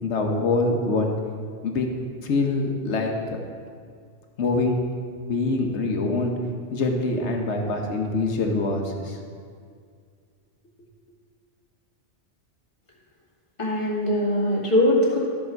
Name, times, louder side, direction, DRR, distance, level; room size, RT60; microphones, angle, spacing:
voice 1, 0.0-1.1 1.6-1.9 2.2-3.1 4.4-4.8 5.3-6.3 6.7-9.2, left 3 dB, 70° left, 2 dB, 1.4 m, -24 dB
voice 2, 13.6-15.2, left 1 dB, 25° left, -6 dB, 2.2 m, -21 dB
13.0 x 6.3 x 4.6 m, 2.2 s
omnidirectional pair, 1.2 m